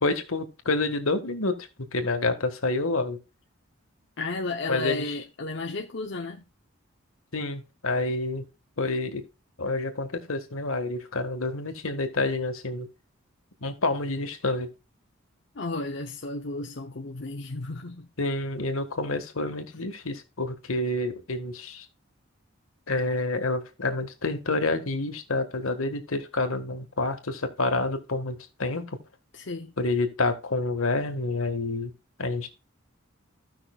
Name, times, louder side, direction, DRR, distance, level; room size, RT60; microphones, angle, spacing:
voice 1, 0.0-3.2 4.7-5.1 7.3-8.4 8.8-9.2 9.6-12.9 13.6-14.7 18.2-21.8 22.9-29.0 29.8-31.9 32.2-32.5, left 2 dB, 80° left, 1.6 m, -28 dB
voice 2, 4.2-6.4 15.5-18.1 29.3-29.7, left 3 dB, 55° left, 0.8 m, -33 dB
15.5 x 5.8 x 2.3 m
head